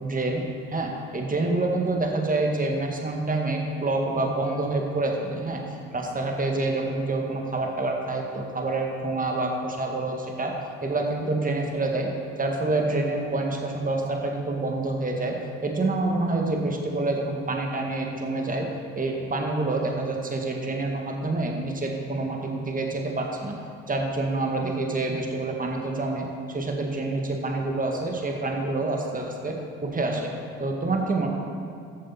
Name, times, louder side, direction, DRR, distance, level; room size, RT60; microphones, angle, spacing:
voice 1, 0.0-0.4 0.7-5.6 5.9-10.5 10.8-12.1 12.4-15.4 15.6-18.7 19.0-23.5 23.9-30.3 30.6-31.3, right 2 dB, 20° right, 1 dB, 2.0 m, -27 dB
13.5 x 8.8 x 4.3 m, 2.3 s
hypercardioid pair, 60°, 41 cm